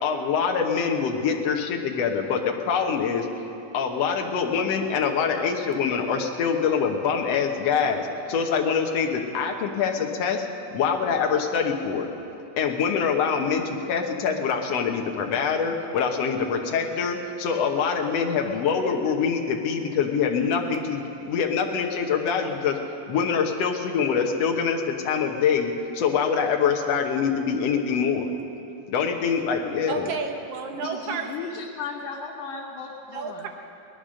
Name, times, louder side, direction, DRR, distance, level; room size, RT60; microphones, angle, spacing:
voice 1, 0.0-3.3 3.7-12.1 12.6-22.8 23.1-28.3 28.9-30.1, left 6 dB, 60° left, 3 dB, 2.0 m, -25 dB
voice 2, 29.9-31.6 33.1-33.5, right 5 dB, 65° right, 4 dB, 1.7 m, -32 dB
voice 3, 30.7-33.4, left 5 dB, 80° left, -6 dB, 2.8 m, -36 dB
19.0 x 12.0 x 6.4 m, 2.8 s
omnidirectional pair, 3.5 m